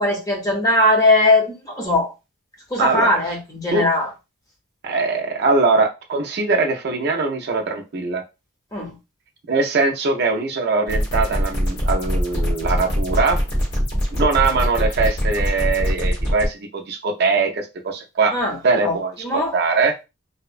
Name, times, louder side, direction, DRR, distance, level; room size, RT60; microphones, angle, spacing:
voice 1, 0.0-2.1 2.7-4.1 8.7-8.9 18.3-18.6 18.8-19.0 19.2-19.5, left 2 dB, 15° left, 0 dB, 0.7 m, -19 dB
voice 2, 2.8-3.1 3.7-3.9 4.8-8.2 9.5-13.4 14.1-18.3 18.6-19.9, right 4 dB, 50° right, 2 dB, 0.4 m, -21 dB
sound 1, 10.9-16.5, equal, 50° left, 1.1 m, -22 dB
2.7 x 2.1 x 2.4 m, 0.26 s
head